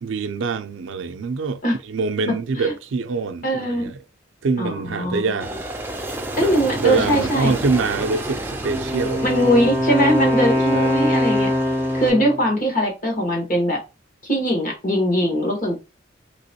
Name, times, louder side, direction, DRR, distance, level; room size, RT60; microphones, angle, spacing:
voice 1, 0.0-4.0 4.4-5.5 6.4-6.5 6.8-9.6 10.0-10.3 10.7-11.0, right 4 dB, 80° right, 0.4 m, -25 dB
voice 2, 3.4-3.8 4.6-5.3 6.4-7.5 9.2-11.5 11.9-13.8 14.2-15.8, equal, 45° left, 1.4 m, -21 dB
Aircraft, 5.4-12.1, right 1 dB, 10° right, 0.4 m, -31 dB
Wind instrument woodwind instrument, 8.6-12.5, equal, 10° left, 0.9 m, -22 dB
3.4 x 2.9 x 2.8 m
head